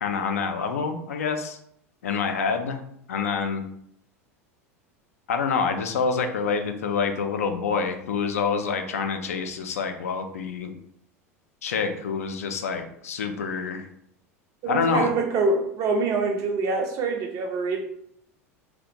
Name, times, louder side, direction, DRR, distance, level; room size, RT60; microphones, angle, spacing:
voice 1, 0.0-1.6 2.0-2.8 3.1-3.6 5.3-10.7 11.6-13.9 14.7-15.1, left 5 dB, 75° left, 6 dB, 0.3 m, -27 dB
voice 2, 14.6-17.8, right 3 dB, 45° right, 3 dB, 0.5 m, -25 dB
2.4 x 2.1 x 2.7 m, 0.71 s
figure-of-eight pair, 80°, 8 cm